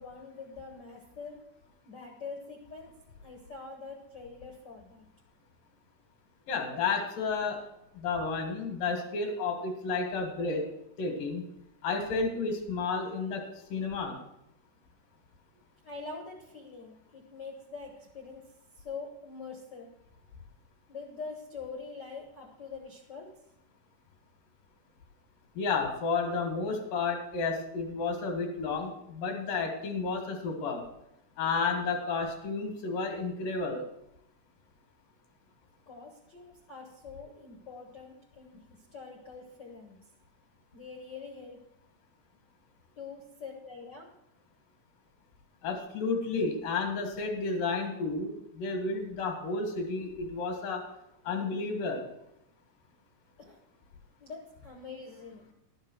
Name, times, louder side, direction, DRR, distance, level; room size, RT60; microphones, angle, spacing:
voice 1, 0.0-1.4 1.8-2.9 3.2-5.1 15.8-18.5 18.8-19.9 20.9-23.3 35.9-40.0 40.7-41.6 43.0-44.1 53.4-53.6 54.2-55.5, left 4 dB, 65° left, 1 dB, 1.0 m, -44 dB
voice 2, 6.5-7.6 7.9-10.6 11.0-11.4 11.8-13.4 13.7-14.2 25.5-30.8 31.4-33.8 45.6-50.8 51.2-52.1, left 4 dB, 90° left, 3 dB, 3.4 m, -31 dB
12.0 x 6.6 x 6.2 m, 0.82 s
omnidirectional pair, 3.7 m